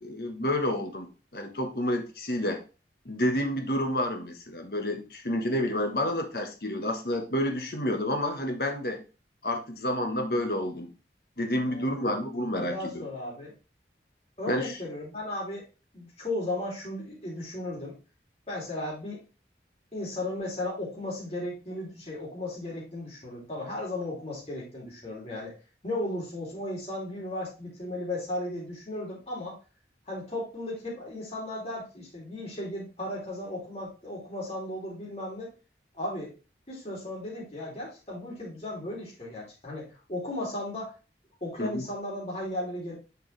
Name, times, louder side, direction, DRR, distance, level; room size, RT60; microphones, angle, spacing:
voice 1, 0.0-1.1 1.3-2.6 3.0-9.0 9.4-10.9 11.4-13.0 14.5-14.7 41.6-41.8, left 1 dB, 55° left, 4 dB, 1.3 m, -29 dB
voice 2, 11.7-12.1 12.6-13.5 14.4-15.7 15.9-18.0 18.5-19.2 19.9-25.5 25.8-29.6 30.1-35.5 35.9-36.4 36.7-40.9 41.4-42.9, left 1 dB, 35° left, -5 dB, 2.9 m, -35 dB
6.7 x 4.8 x 3.3 m, 0.32 s
head